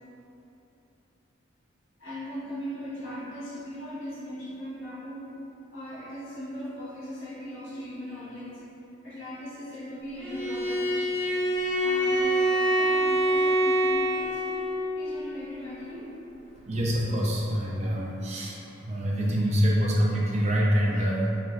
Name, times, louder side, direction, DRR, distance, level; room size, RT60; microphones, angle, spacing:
voice 1, 2.0-5.3 5.7-8.7 9.0-11.0 11.8-14.5 15.0-16.2, equal, 75° left, -9 dB, 1.3 m, -39 dB
Bowed string instrument, 10.2-14.9, right 1 dB, 5° left, 0.7 m, -25 dB
voice 2, 16.7-18.6 18.8-21.3, equal, 35° right, -4 dB, 0.5 m, -25 dB
3.0 x 2.5 x 4.4 m, 2.9 s
head